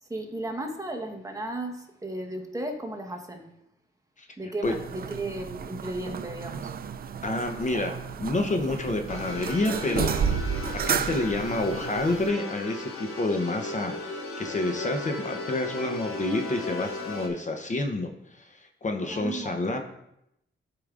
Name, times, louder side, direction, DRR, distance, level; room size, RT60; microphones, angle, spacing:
voice 1, 0.0-3.5 4.4-6.8 19.1-19.8, right 1 dB, 15° right, 2 dB, 1.1 m, -35 dB
sound 1, 4.6-12.3, right 7 dB, 45° right, 0.4 m, -32 dB
voice 2, 7.2-10.2 10.9-19.8, left 2 dB, 35° left, 4 dB, 0.8 m, -29 dB
sound 2, 9.1-17.3, left 2 dB, 80° left, 1.1 m, -36 dB
12.5 x 4.9 x 2.5 m, 0.80 s
cardioid pair, 90°, 21 cm